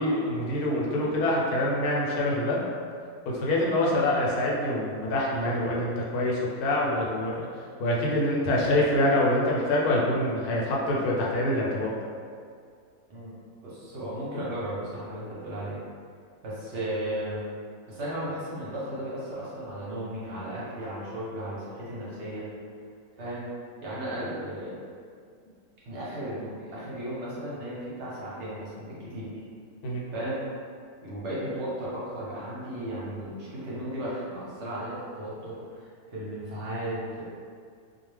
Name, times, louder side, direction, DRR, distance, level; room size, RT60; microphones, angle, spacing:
voice 1, 0.0-2.6 3.3-7.5 7.8-11.9 29.8-30.0, left 1 dB, 80° left, -4 dB, 1.1 m, -25 dB
voice 2, 13.6-15.8 16.4-17.4 17.9-22.5 23.2-23.5 23.8-24.8 25.8-29.3 30.1-30.4 31.0-37.2, right 1 dB, 55° right, -8 dB, 1.0 m, -35 dB
2.5 x 2.1 x 3.2 m, 2.2 s
omnidirectional pair, 1.6 m